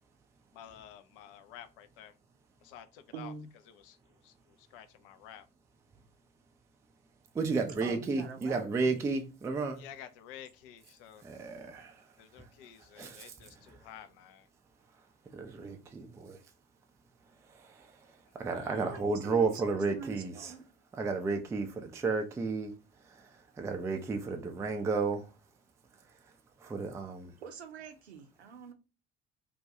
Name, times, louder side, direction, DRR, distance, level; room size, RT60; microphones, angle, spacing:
voice 1, 0.5-2.1 2.6-3.3 3.7-5.5 9.8-11.2 12.2-14.5 18.5-19.0, left 10 dB, 60° left, 0.4 m, -51 dB
voice 2, 3.1-3.5 7.8-9.0 18.8-20.6 27.4-28.7, right 6 dB, 80° right, 0.5 m, -45 dB
voice 3, 7.3-9.8 11.2-12.5 13.0-13.3 13.7-13.9 15.3-16.4 17.4-20.5 20.9-25.3 26.2-26.3 26.6-27.3, right 4 dB, 10° right, 0.3 m, -33 dB
2.3 x 2.2 x 2.7 m
figure-of-eight pair, 60°, 32 cm